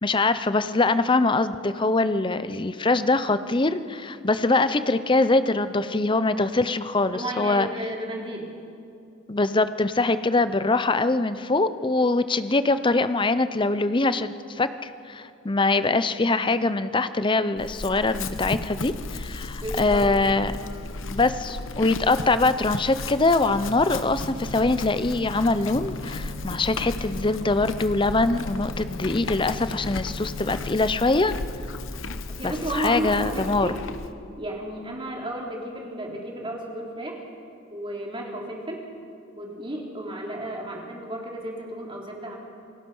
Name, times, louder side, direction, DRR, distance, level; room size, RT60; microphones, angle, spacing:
voice 1, 0.0-7.7 9.3-20.5 21.1-31.3 32.4-33.7, left 3 dB, 25° left, 12 dB, 0.6 m, -23 dB
voice 2, 7.1-8.5 19.6-20.1 32.4-33.8 34.4-37.2 37.7-38.9 39.3-42.4, right 1 dB, 25° right, -1 dB, 3.3 m, -33 dB
Chewing mastication / Livestock farm animals working animals, 17.6-34.1, left 2 dB, 70° left, 1.0 m, -35 dB
sound 1, 24.1-30.7, left 2 dB, 55° right, 1.1 m, -41 dB
29.0 x 19.5 x 5.5 m, 2.5 s
head